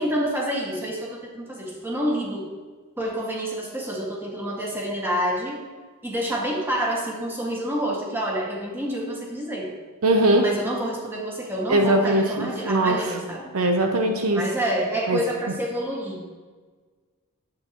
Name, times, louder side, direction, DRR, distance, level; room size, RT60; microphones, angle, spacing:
voice 1, 0.0-2.4 3.0-5.6 6.0-9.7 10.3-13.5 14.3-16.2, equal, 10° right, -3 dB, 1.8 m, -28 dB
voice 2, 10.0-10.5 11.7-13.0 13.5-14.5 15.1-15.2, right 1 dB, 70° right, 4 dB, 0.8 m, -20 dB
10.5 x 8.6 x 3.0 m, 1.5 s
head